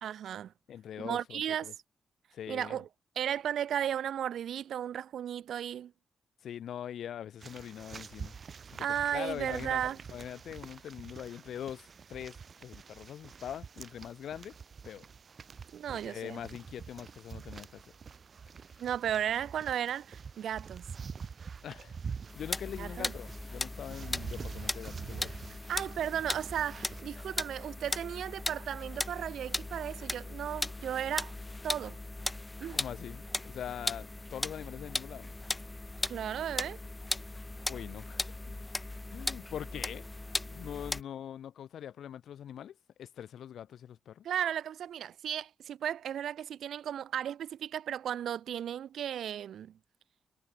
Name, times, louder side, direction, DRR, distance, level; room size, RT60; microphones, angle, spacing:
voice 1, 0.0-0.5 1.0-1.7 2.5-2.9 3.2-5.9 8.8-10.0 15.7-16.4 18.8-20.9 22.8-23.1 25.7-31.4 31.6-32.0 32.6-32.8 36.1-36.8 44.2-49.7, right 10 dB, 85° right, 0.6 m, -35 dB
voice 2, 0.7-1.7 2.3-2.8 6.4-8.3 8.7-14.6 14.8-15.1 15.9-17.8 21.6-22.0 22.3-25.3 32.7-35.3 37.7-38.5 39.1-40.0 40.4-44.3, left 9 dB, 85° left, 6.4 m, -43 dB
sound 1, 7.4-27.0, right 6 dB, 45° right, 1.4 m, -46 dB
sound 2, 22.3-41.0, left 2 dB, 15° left, 2.5 m, -38 dB
cardioid pair, 120°, 0 cm